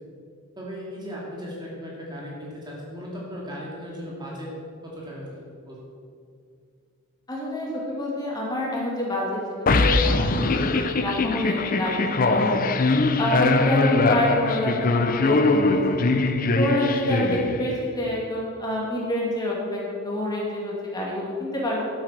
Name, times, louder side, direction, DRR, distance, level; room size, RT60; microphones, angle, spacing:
voice 1, 0.6-4.5 4.8-5.8, equal, 20° right, -4 dB, 2.3 m, -37 dB
voice 2, 7.3-12.7 13.2-16.2 16.5-21.9, left 1 dB, 20° left, -4 dB, 2.5 m, -28 dB
sound 1, 9.7-17.9, left 3 dB, 40° left, 0.6 m, -22 dB
11.0 x 8.8 x 6.0 m, 2.2 s
head